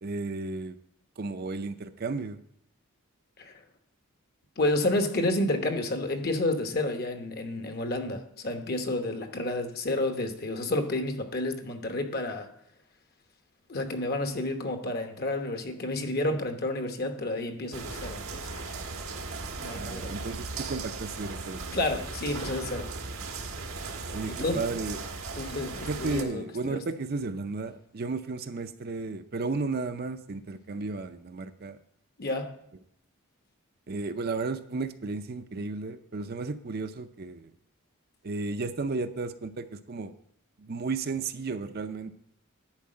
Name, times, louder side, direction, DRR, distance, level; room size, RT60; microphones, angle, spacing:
voice 1, 0.0-0.8 1.2-2.4 19.7-22.1 24.1-25.0 25.8-31.8 33.9-37.5 38.2-40.1 40.6-42.2, right 3 dB, 45° right, 9 dB, 0.5 m, -34 dB
voice 2, 4.6-12.5 13.7-18.6 19.6-20.1 21.7-22.9 24.3-24.6 25.4-26.8 32.2-32.5, left 2 dB, 45° left, 6 dB, 1.1 m, -30 dB
sound 1, 17.7-26.2, right 3 dB, 85° right, 1.4 m, -37 dB
10.5 x 4.7 x 7.6 m, 0.72 s
head